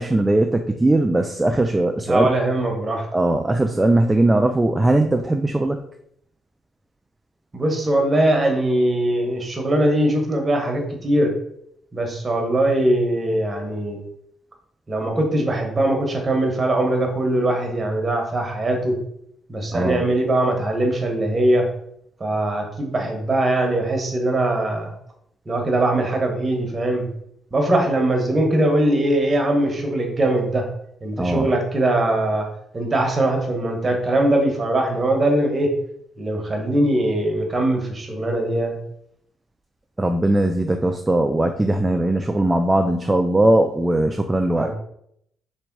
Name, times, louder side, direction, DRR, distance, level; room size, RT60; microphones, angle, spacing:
voice 1, 0.0-2.3 3.1-5.8 19.7-20.1 31.2-31.5 40.0-44.7, right 1 dB, 15° right, 4 dB, 0.4 m, -19 dB
voice 2, 2.1-3.0 7.5-11.3 11.9-14.0 14.9-19.0 19.5-21.7 22.2-24.9 25.5-27.1 27.5-30.6 31.0-32.5 32.7-35.7 36.2-38.8 44.6-44.7, right 1 dB, 30° right, 2 dB, 1.2 m, -21 dB
3.5 x 3.3 x 4.6 m, 0.72 s
cardioid pair, 90°, 0 cm